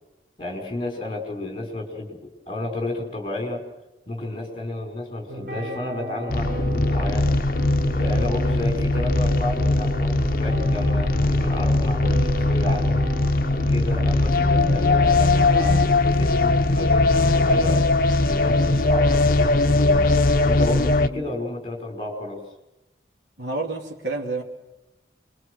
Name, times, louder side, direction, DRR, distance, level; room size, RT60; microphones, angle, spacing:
voice 1, 0.4-3.6 4.1-7.3 7.9-13.1 13.7-17.9 18.3-20.2 20.4-22.4, left 2 dB, 30° left, 5.3 m, -31 dB
sound 1, 5.3-15.9, right 1 dB, 50° right, 5.8 m, -34 dB
sound 2, 6.3-21.1, left 2 dB, 50° left, 0.9 m, -20 dB
voice 2, 23.4-24.4, right 3 dB, 75° right, 2.7 m, -29 dB
26.5 x 23.0 x 6.5 m
head